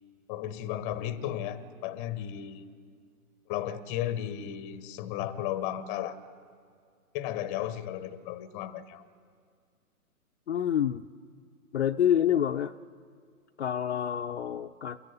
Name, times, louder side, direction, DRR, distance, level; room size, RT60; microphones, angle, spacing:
voice 1, 0.3-2.7 3.5-6.2 7.1-9.0, left 11 dB, 15° left, 14 dB, 0.9 m, -34 dB
voice 2, 10.5-11.0 11.7-12.7 13.6-15.0, left 9 dB, 50° left, 5 dB, 0.6 m, -27 dB
29.5 x 15.0 x 8.4 m, 2.1 s
figure-of-eight pair, 130°, 45 cm